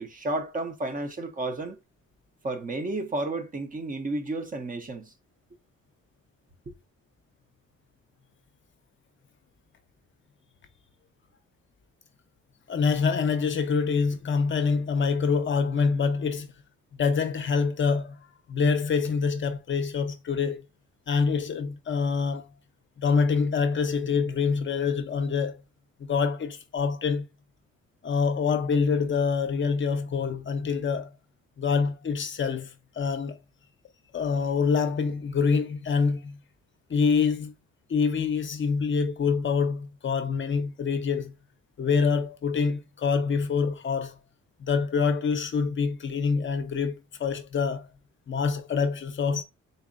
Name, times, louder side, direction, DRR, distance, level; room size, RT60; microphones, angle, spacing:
voice 1, 0.0-1.8 2.4-5.1, right 2 dB, 25° right, 0.7 m, -32 dB
voice 2, 12.7-16.5 17.0-18.2 18.5-20.6 21.1-22.5 23.0-25.5 26.1-27.2 28.0-31.1 31.6-33.4 34.1-36.4 36.9-37.5 37.9-41.3 41.8-44.2 44.6-47.9 48.3-49.4, left 5 dB, 40° left, 0.6 m, -26 dB
4.0 x 2.6 x 2.5 m
cardioid pair, 90°, 30 cm